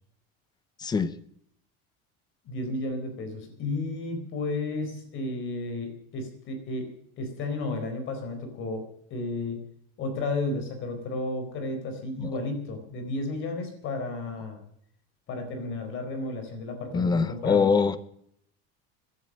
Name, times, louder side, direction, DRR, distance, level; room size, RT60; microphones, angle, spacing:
voice 1, 2.4-8.8 9.1-9.6 10.0-14.6 15.3-17.7, left 2 dB, 40° left, 7 dB, 4.3 m, -33 dB
voice 2, 16.9-18.0, left 5 dB, 15° left, 15 dB, 0.6 m, -23 dB
16.0 x 11.0 x 6.4 m, 0.69 s
cardioid pair, 175°, 31 cm